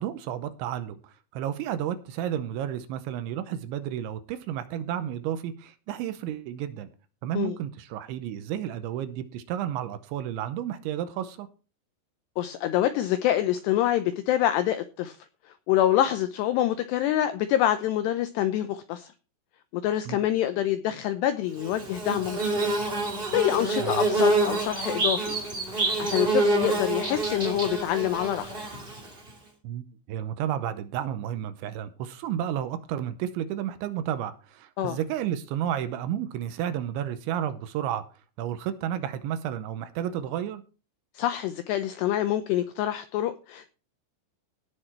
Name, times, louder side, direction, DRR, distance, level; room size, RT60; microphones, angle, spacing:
voice 1, 0.0-6.9 7.2-11.5 20.1-20.3 23.8-24.0 29.6-38.0 38.4-40.6, right 10 dB, 80° right, 3.0 m, -32 dB
voice 2, 12.4-15.2 15.7-19.1 19.7-22.8 23.3-25.4 25.8-28.5 34.8-35.0 41.2-43.7, left 12 dB, 90° left, 2.4 m, -26 dB
Bird / Buzz, 21.6-29.3, right 2 dB, 40° right, 0.7 m, -27 dB
17.5 x 6.7 x 4.4 m
omnidirectional pair, 5.7 m